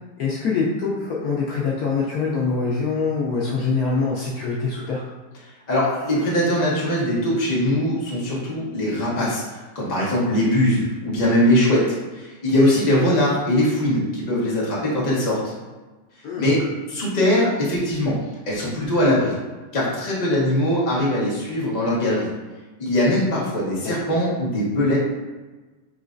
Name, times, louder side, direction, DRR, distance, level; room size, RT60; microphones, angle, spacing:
voice 1, 0.2-5.0 16.2-16.5, left 4 dB, 85° left, -5 dB, 0.8 m, -24 dB
voice 2, 5.7-15.5 16.4-18.1 18.4-19.4 19.7-22.3 22.8-25.0, left 1 dB, 35° left, -6 dB, 0.7 m, -21 dB
4.8 x 3.1 x 2.5 m, 1.2 s
omnidirectional pair, 2.3 m